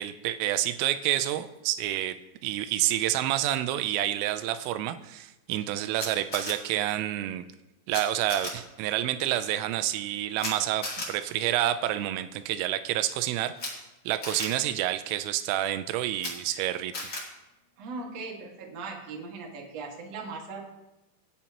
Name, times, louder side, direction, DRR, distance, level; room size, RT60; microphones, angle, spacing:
voice 1, 0.0-7.4 7.9-17.1, right 13 dB, 90° right, 11 dB, 3.3 m, -29 dB
Camera, 6.0-6.5 7.9-8.0 8.3-8.5 10.4-10.5 10.8-11.1 13.5-13.7 14.2-14.5 16.1-16.3 16.9-17.2, left 2 dB, 45° left, 1.4 m, -34 dB
voice 2, 17.8-20.7, right 4 dB, 50° right, 0 dB, 2.0 m, -39 dB
25.5 x 8.6 x 3.0 m, 1.0 s
omnidirectional pair, 5.7 m